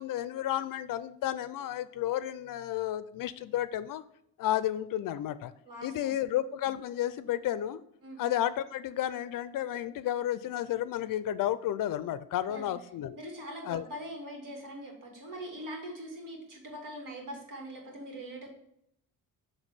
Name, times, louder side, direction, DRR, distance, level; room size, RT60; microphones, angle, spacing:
voice 1, 0.0-4.0 4.4-5.5 5.8-7.8 8.2-13.2 13.7-13.8, left 12 dB, 65° left, 14 dB, 0.5 m, -32 dB
voice 2, 5.6-6.2 8.0-8.2 12.5-12.7 13.1-18.5, equal, 60° right, 0 dB, 2.4 m, -42 dB
7.1 x 3.5 x 5.6 m, 0.73 s
cardioid pair, 140°, 36 cm